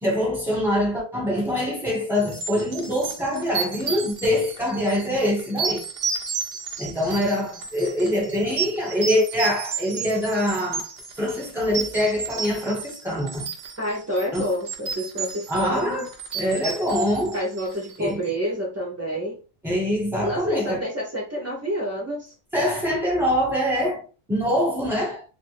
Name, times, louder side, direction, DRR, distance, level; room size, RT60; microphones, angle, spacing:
voice 1, 0.0-5.8 6.8-10.9 11.2-13.5 14.3-14.5 15.5-16.1 16.3-17.4 18.0-18.2 19.6-20.9 22.5-25.2, equal, ahead, 1.0 m, -24 dB
sound 1, 2.2-18.0, right 5 dB, 60° right, 0.7 m, -32 dB
voice 2, 13.8-16.1 17.3-19.4 20.2-22.3, equal, 25° right, 0.3 m, -28 dB
2.5 x 2.5 x 3.2 m
omnidirectional pair, 1.4 m